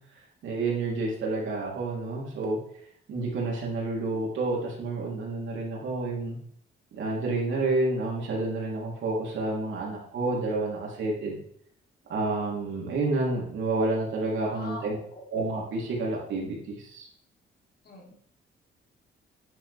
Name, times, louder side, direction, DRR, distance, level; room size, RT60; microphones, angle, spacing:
voice 1, 0.4-2.6 3.1-6.4 6.9-11.4 12.1-15.0 15.3-17.1, right 2 dB, 75° right, -2 dB, 4.2 m, -29 dB
voice 2, 14.5-15.2 17.8-18.1, left 1 dB, 55° left, 0 dB, 3.9 m, -42 dB
10.5 x 10.5 x 3.8 m, 0.63 s
cardioid pair, 90°, 20 cm